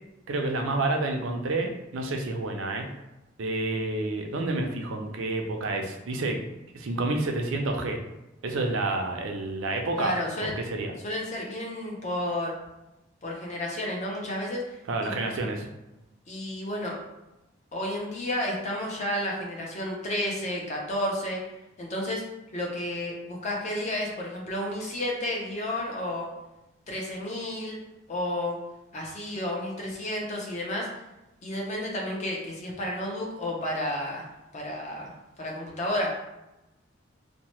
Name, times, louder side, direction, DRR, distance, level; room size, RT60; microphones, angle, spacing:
voice 1, 0.3-2.9 3.4-6.4 6.7-8.0 8.4-10.1 10.4-10.9 14.9-15.7, right 2 dB, 80° right, 3 dB, 0.5 m, -29 dB
voice 2, 10.0-10.5 11.0-12.5 13.2-14.8 15.0-15.4 16.3-17.0 17.7-21.4 21.8-22.2 22.5-26.3 26.9-27.8 28.1-28.6 28.9-30.9 31.4-34.3 34.5-36.2, left 1 dB, 35° left, -1 dB, 0.6 m, -31 dB
2.8 x 2.1 x 3.0 m, 0.97 s
head